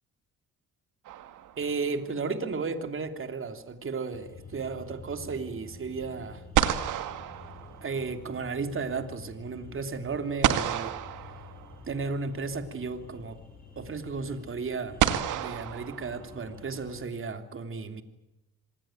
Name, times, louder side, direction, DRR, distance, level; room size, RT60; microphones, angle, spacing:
sound 1, 1.1-1.9 6.0-6.1 6.5-8.3 10.4-12.0 13.4-13.5 15.0-16.6, right 11 dB, 85° right, 2.1 m, -30 dB
voice 1, 1.6-6.4 7.8-11.0 11.9-13.4 13.7-15.0 15.4-18.0, right 4 dB, 45° right, 8 dB, 3.2 m, -34 dB
sound 2, 4.1-17.0, left 4 dB, 30° left, 7.7 m, -49 dB
27.0 x 20.0 x 9.0 m, 0.94 s
cardioid pair, 90°, 30 cm